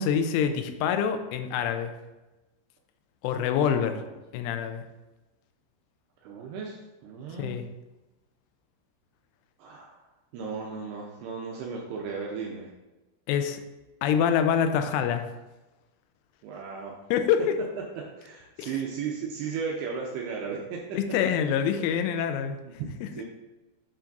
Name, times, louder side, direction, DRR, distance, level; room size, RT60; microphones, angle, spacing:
voice 1, 0.0-1.9 3.2-4.0 4.3-4.8 7.4-7.6 13.3-13.6 14.0-15.3 17.1-17.6 18.6-18.7 20.9-22.6 23.0-23.1, left 8 dB, 90° left, 8 dB, 3.1 m, -26 dB
voice 2, 3.8-4.1 6.2-7.6 9.6-10.0 10.3-12.7 16.4-17.0 18.0-21.0 22.6-22.7 23.1-23.2, right 5 dB, 85° right, -1 dB, 2.4 m, -35 dB
8.6 x 5.8 x 2.6 m, 1.1 s
omnidirectional pair, 5.5 m